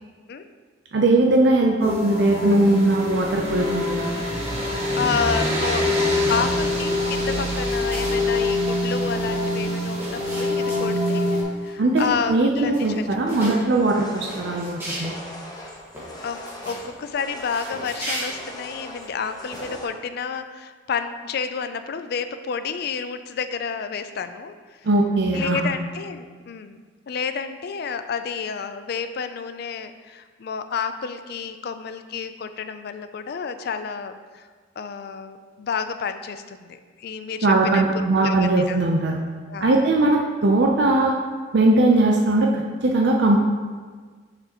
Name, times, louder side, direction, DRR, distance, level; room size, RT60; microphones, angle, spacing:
voice 1, 0.9-4.1 11.8-15.2 24.8-25.7 37.4-39.2 39.6-41.2 41.5-43.4, right 2 dB, 60° right, 0 dB, 0.5 m, -20 dB
sound 1, 1.8-11.4, left 1 dB, 30° right, 1.4 m, -24 dB
voice 2, 5.0-5.9 6.3-13.1 16.2-24.8 25.3-34.4 34.8-38.8 39.5-39.7, left 6 dB, 55° left, 10 dB, 0.4 m, -30 dB
sound 2, 5.7-6.6 6.9-8.3 8.6-8.7 8.9-11.1 11.5-11.7 12.0-12.4 12.7-13.5 14.0-15.2 15.5-15.6 15.9-16.8 17.3-19.1 19.5-19.7, right 1 dB, 15° right, 1.7 m, -36 dB
sound 3, 13.3-19.9, left 1 dB, 20° left, 0.7 m, -41 dB
6.6 x 6.1 x 2.9 m, 1.5 s
head